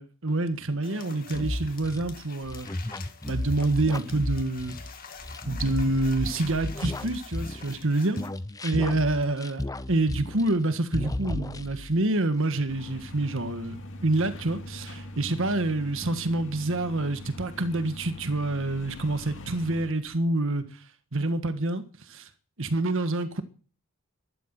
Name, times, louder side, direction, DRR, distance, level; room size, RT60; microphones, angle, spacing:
voice 1, 0.0-2.7 3.3-4.7 5.5-8.3 8.6-9.6 9.9-20.8 21.1-22.3 22.6-23.4, right 2 dB, 60° right, 1.5 m, -27 dB
sound 1, 0.8-8.3, left 6 dB, 40° left, 2.1 m, -47 dB
sound 2, 1.3-7.9 8.2-10.7 10.9-12.0, left 1 dB, 15° left, 0.7 m, -34 dB
sound 3, 12.7-19.9, left 1 dB, 60° left, 2.2 m, -42 dB
13.0 x 12.0 x 7.6 m
head